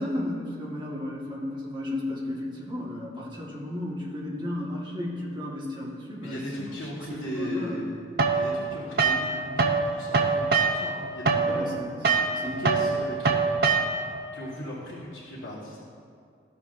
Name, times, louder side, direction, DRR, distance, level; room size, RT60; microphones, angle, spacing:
voice 1, 0.0-7.8 11.4-11.9 12.3-12.9, left 1 dB, 25° right, -5 dB, 1.3 m, -34 dB
voice 2, 6.1-8.0 8.3-11.6 12.1-13.8 14.3-15.8, equal, 85° left, -8 dB, 1.4 m, -38 dB
sound 1, 8.2-9.8 10.1-14.2, right 4 dB, 50° right, 0.6 m, -24 dB
13.5 x 6.9 x 2.5 m, 2.2 s
head